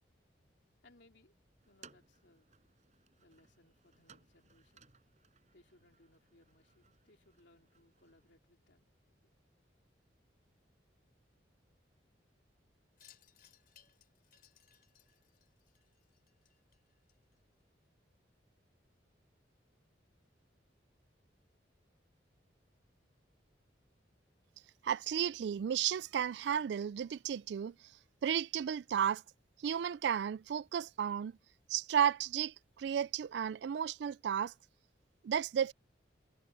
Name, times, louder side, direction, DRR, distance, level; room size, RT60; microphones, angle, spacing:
voice 1, 0.8-1.3 1.7-2.5 3.2-4.9 5.5-8.9, left 2 dB, 70° left, 3.0 m, -66 dB
sound 1, 1.6-8.3, right 5 dB, 40° right, 6.0 m, -64 dB
Wind chime, 13.0-17.6, left 10 dB, 50° left, 4.5 m, -66 dB
voice 2, 24.8-27.7 28.2-29.2 29.6-31.3 31.7-34.5 35.2-35.7, right 8 dB, 65° right, 0.3 m, -33 dB
head